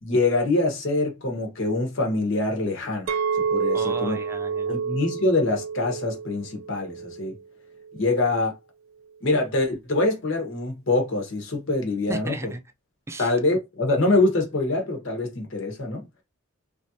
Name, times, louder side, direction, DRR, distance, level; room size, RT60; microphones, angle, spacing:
voice 1, 0.0-4.2 4.7-7.3 7.9-8.5 9.2-12.5 13.2-16.0, left 2 dB, 65° left, 1.1 m, -24 dB
Chink clink, 3.1-7.4 7.9-8.3, right 6 dB, 75° right, 0.4 m, -29 dB
voice 2, 3.7-4.8 12.1-12.6 13.1-13.3, right 2 dB, 15° right, 0.4 m, -35 dB
3.1 x 2.5 x 2.7 m
head